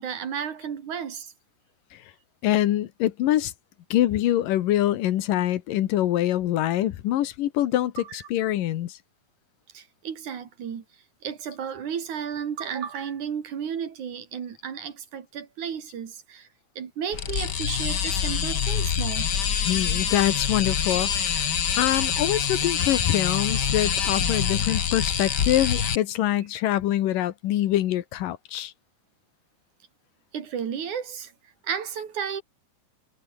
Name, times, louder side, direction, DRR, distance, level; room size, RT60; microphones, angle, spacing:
voice 1, 0.0-1.3 9.7-10.8 11.2-16.5 16.8-19.3 30.3-31.3 31.6-32.4, right 7 dB, 65° right, 3.7 m, -33 dB
voice 2, 2.4-3.5 3.9-9.0 19.6-21.5 21.8-28.7, left 13 dB, 85° left, 2.9 m, -24 dB
sound 1, 17.1-26.0, left 8 dB, 50° left, 1.4 m, -25 dB
omnidirectional pair, 3.8 m